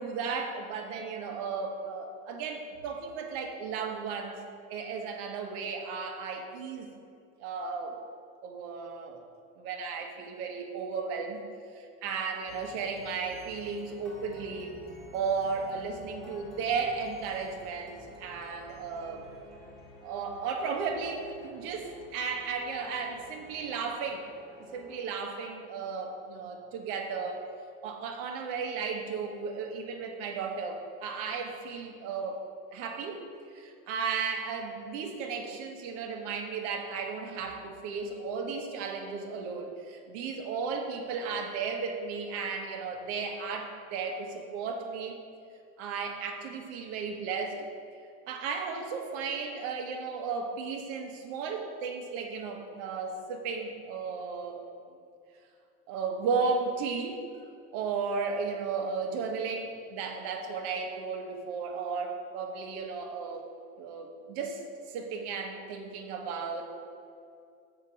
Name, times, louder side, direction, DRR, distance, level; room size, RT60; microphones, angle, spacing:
voice 1, 0.0-4.4 4.7-6.9 7.4-8.0 8.4-9.2 9.6-11.4 11.7-14.7 15.1-19.2 20.0-24.3 24.7-27.4 27.8-32.4 32.7-33.2 33.5-45.1 45.8-47.6 48.3-54.6 55.9-57.2 57.7-63.4 63.8-64.6 64.9-66.7, right 5 dB, 70° right, 3 dB, 1.3 m, -34 dB
sound 1, 12.5-25.7, left 1 dB, ahead, 1.8 m, -51 dB
7.0 x 5.9 x 5.2 m, 2.4 s
supercardioid pair, 125°, 34 cm